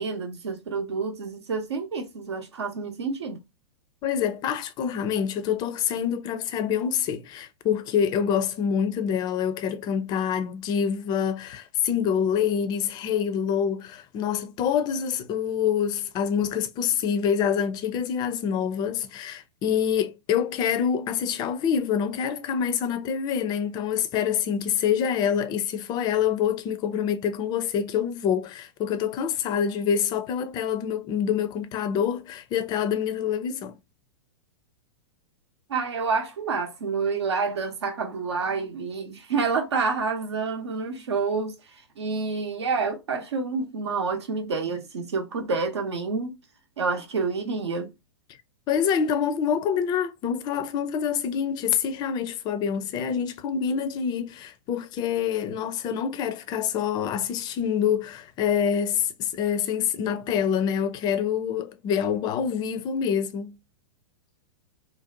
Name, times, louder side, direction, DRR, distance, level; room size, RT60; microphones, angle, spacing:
voice 1, 0.0-3.4 35.7-46.3 46.8-47.9, right 4 dB, 75° right, 0.8 m, -28 dB
voice 2, 4.0-33.8 48.7-63.6, left 8 dB, 30° left, 0.4 m, -26 dB
2.6 x 2.0 x 2.6 m
hypercardioid pair, 105°, 14 cm